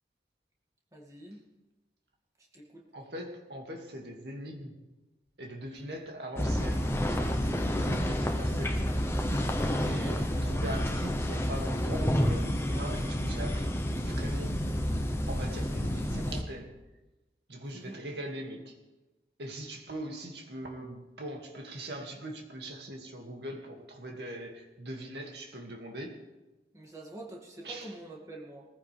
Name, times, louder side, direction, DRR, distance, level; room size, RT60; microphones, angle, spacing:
voice 1, 0.9-1.5 2.5-2.8 17.7-18.0 26.7-28.7, right 1 dB, 20° right, -2 dB, 2.3 m, -46 dB
voice 2, 2.9-4.8 5.4-8.8 9.4-13.8 14.0-14.5 15.3-16.7 17.5-18.7 19.4-26.2 27.6-27.9, right 1 dB, 75° right, 1 dB, 2.2 m, -41 dB
sound 1, 6.4-16.4, equal, 15° left, 0.9 m, -29 dB
20.0 x 15.0 x 3.5 m, 1.1 s
head